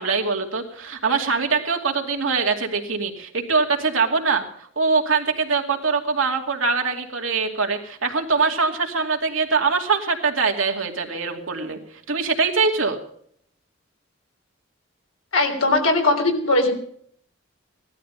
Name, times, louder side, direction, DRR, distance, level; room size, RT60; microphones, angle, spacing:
voice 1, 0.0-11.8 12.1-13.0, right 4 dB, 80° right, 3 dB, 2.6 m, -23 dB
voice 2, 15.3-16.7, left 2 dB, 85° left, 4 dB, 3.3 m, -19 dB
17.0 x 12.5 x 5.4 m, 0.63 s
head